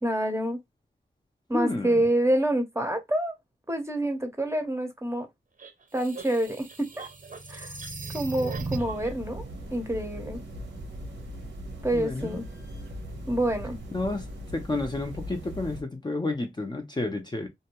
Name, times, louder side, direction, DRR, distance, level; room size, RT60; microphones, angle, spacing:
voice 1, 0.0-0.6 1.5-3.3 3.7-5.3 5.9-7.1 7.5-7.7 8.1-9.4 9.7-10.4 11.8-12.4 13.3-13.8, right 1 dB, 15° right, 0.8 m, -27 dB
voice 2, 1.5-2.1 11.9-12.4 13.9-14.3 14.5-17.5, left 2 dB, 25° left, 0.6 m, -30 dB
sound 1, 5.6-9.1, right 4 dB, 45° right, 0.8 m, -37 dB
sound 2, 8.5-15.8, equal, 75° right, 1.0 m, -39 dB
2.6 x 2.2 x 2.9 m
cardioid pair, 70°, 19 cm